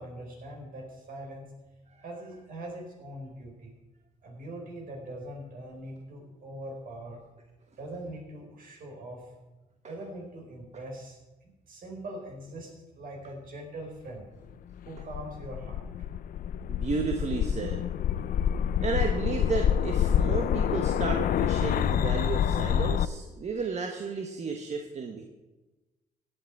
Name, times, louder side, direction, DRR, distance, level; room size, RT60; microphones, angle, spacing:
voice 1, 0.0-1.5 2.0-3.7 4.2-7.2 7.8-9.3 9.9-12.7 13.0-14.3 14.8-15.8, right 1 dB, 65° right, 0 dB, 4.5 m, -42 dB
sound 1, 14.7-23.1, left 9 dB, 65° left, 0.5 m, -27 dB
voice 2, 16.7-17.9 18.8-25.2, right 4 dB, 45° right, 4 dB, 1.2 m, -33 dB
16.5 x 8.9 x 4.8 m, 1.1 s
cardioid pair, 100°, 16 cm